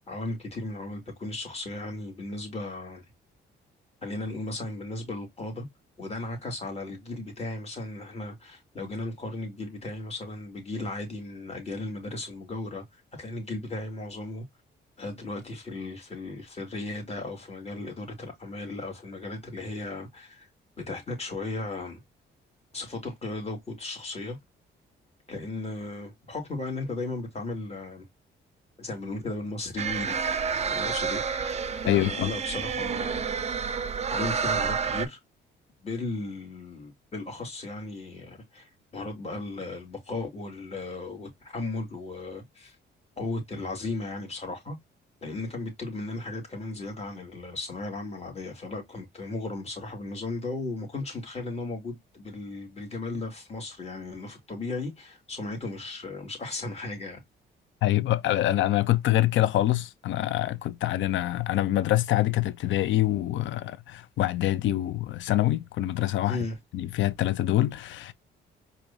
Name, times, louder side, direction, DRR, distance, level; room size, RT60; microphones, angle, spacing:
voice 1, 0.1-3.0 4.0-5.7 6.0-14.4 15.0-20.5 20.9-22.0 22.7-24.4 25.3-28.1 28.8-30.2 30.6-33.2 34.1-35.2 35.8-42.8 43.2-44.8 45.2-57.2 66.3-66.6, left 2 dB, 30° left, 2.4 m, -36 dB
sound 1, 29.8-35.1, right 6 dB, 35° right, 0.5 m, -29 dB
voice 2, 31.9-32.3 57.8-66.4 66.7-68.1, left 14 dB, 75° left, 0.5 m, -25 dB
4.7 x 2.7 x 2.6 m
cardioid pair, 90°, 20 cm